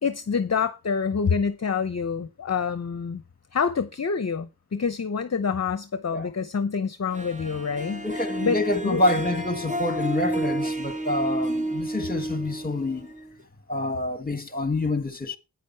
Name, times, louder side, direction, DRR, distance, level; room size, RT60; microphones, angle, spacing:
voice 1, 0.0-3.2 3.5-8.0 8.4-8.6 8.8-9.0, left 6 dB, 45° left, 0.7 m, -27 dB
Harp, 7.1-13.4, right 1 dB, 20° right, 1.4 m, -30 dB
voice 2, 8.0-13.1 13.7-15.4, left 2 dB, 25° left, 1.7 m, -27 dB
10.0 x 9.3 x 4.5 m
wide cardioid pair, 60°, 36 cm